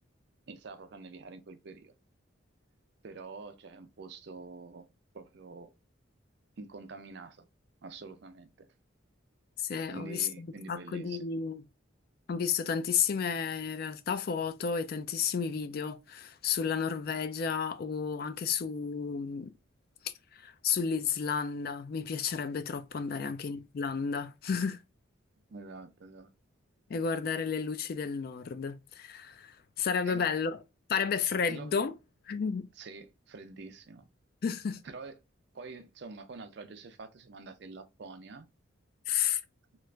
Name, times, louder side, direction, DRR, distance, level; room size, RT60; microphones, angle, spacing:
voice 1, 0.5-1.9 3.0-4.9 5.1-5.7 6.6-7.4 7.8-8.7 9.9-11.3 23.1-23.3 25.5-26.3 30.1-30.3 31.5-31.7 32.8-34.1 34.8-35.2 35.5-38.5, right 3 dB, 55° right, 0.5 m, -46 dB
voice 2, 9.6-11.6 12.3-19.5 20.3-24.8 26.9-30.6 30.9-31.9 32.3-32.7 34.4-34.8 39.1-39.4, left 6 dB, 50° left, 0.3 m, -32 dB
3.0 x 2.4 x 3.2 m
head